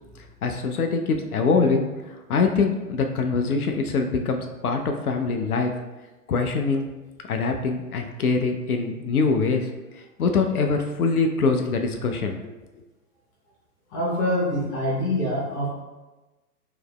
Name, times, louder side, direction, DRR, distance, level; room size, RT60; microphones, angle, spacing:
voice 1, 0.4-5.7 6.3-6.9 7.2-9.7 10.2-12.4, left 4 dB, 70° left, 5 dB, 0.6 m, -23 dB
voice 2, 13.9-15.7, left 1 dB, 15° left, -5 dB, 0.6 m, -25 dB
4.7 x 2.9 x 2.2 m, 1.1 s
figure-of-eight pair, 125°, 46 cm